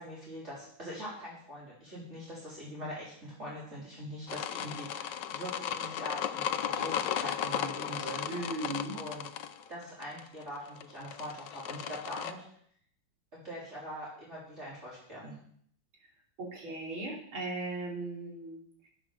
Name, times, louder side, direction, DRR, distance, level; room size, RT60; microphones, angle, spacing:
voice 1, 0.0-8.5 8.9-9.3 9.7-12.4 13.3-15.3, equal, 35° right, -7 dB, 3.7 m, -43 dB
sound 1, 4.3-12.3, left 9 dB, 70° left, 1.3 m, -35 dB
voice 2, 8.3-9.0 16.4-18.9, right 2 dB, 85° right, -1 dB, 4.1 m, -38 dB
11.0 x 9.9 x 6.3 m, 0.64 s
omnidirectional pair, 2.2 m